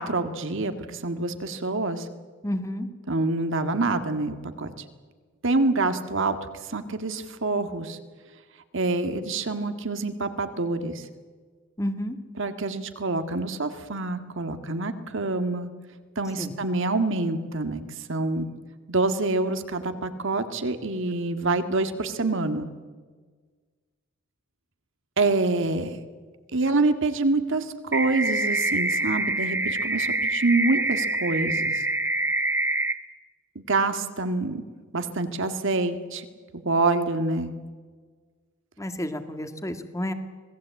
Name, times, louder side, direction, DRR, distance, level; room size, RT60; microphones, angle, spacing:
voice 1, 0.0-2.1 3.1-4.7 5.4-6.4 6.7-8.0 8.7-11.1 12.4-15.7 16.2-17.8 18.1-18.5 18.9-22.7 25.2-26.0 26.5-31.8 33.6-34.6 34.9-36.3 36.5-37.5, right 3 dB, 65° right, 9 dB, 1.9 m, -26 dB
voice 2, 2.4-2.9 11.8-12.2 16.4-16.5 38.8-40.1, left 1 dB, 15° left, 8 dB, 1.8 m, -30 dB
sound 1, 27.9-32.9, right 2 dB, 10° right, 1.3 m, -26 dB
26.0 x 19.0 x 8.4 m, 1.5 s
head